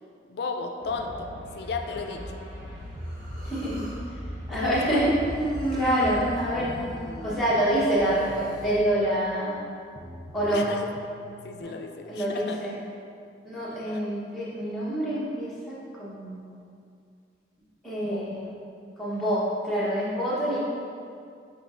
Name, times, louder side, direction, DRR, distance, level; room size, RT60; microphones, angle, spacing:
voice 1, 0.3-1.3 1.6-2.4 4.5-5.1 10.5-10.9 11.4-12.8 13.9-14.0 18.0-18.3, left 4 dB, 65° left, 4 dB, 0.4 m, -34 dB
sound 1, 0.8-9.9, equal, 40° left, 1.0 m, -40 dB
sound 2, 1.0-3.5 5.3-8.9 10.0-11.6, equal, 35° right, 0.4 m, -45 dB
Human voice, 3.1-4.0 5.2-7.9, right 1 dB, 50° right, 1.3 m, -34 dB
voice 2, 3.4-3.8 4.5-5.1 5.7-6.7 7.2-9.5 10.3-10.6 11.6-11.7 12.1-12.8 13.4-16.6 17.8-18.4 19.0-20.6, right 1 dB, ahead, -10 dB, 1.0 m, -26 dB
6.0 x 3.5 x 2.5 m, 2.4 s
head